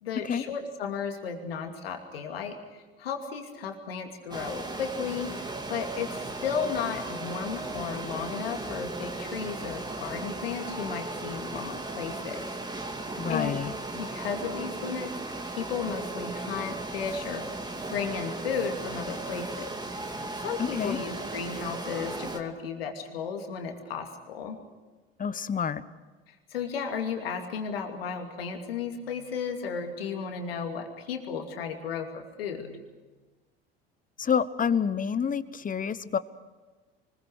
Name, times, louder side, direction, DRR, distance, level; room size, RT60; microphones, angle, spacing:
voice 1, 0.0-12.5 12.9-13.0 13.3-13.6 13.9-15.2 15.5-17.5 17.9-19.7 20.0-24.6 26.3-32.8, left 6 dB, 80° left, 4 dB, 2.7 m, -34 dB
sound 1, 4.3-22.4, right 2 dB, 15° right, 2.3 m, -36 dB
voice 2, 13.2-13.7 20.6-21.0 25.2-25.8 34.2-36.2, left 7 dB, 30° left, 15 dB, 1.2 m, -28 dB
24.5 x 21.0 x 6.5 m, 1.3 s
hypercardioid pair, 65°, 29 cm